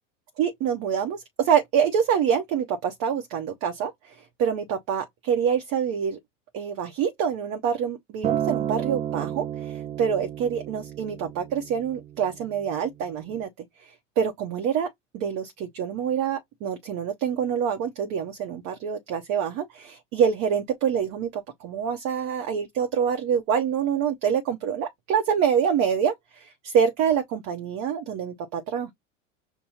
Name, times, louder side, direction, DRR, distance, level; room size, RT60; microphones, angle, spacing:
voice 1, 0.4-4.1 4.4-6.2 6.5-13.5 13.8-13.9 14.2-14.9 15.1-28.9, right 7 dB, 45° right, 0.9 m, -26 dB
Acoustic guitar, 8.2-12.5 13.4-13.5, right 10 dB, 20° right, 0.4 m, -31 dB
5.5 x 2.3 x 4.1 m
hypercardioid pair, 85°, 38 cm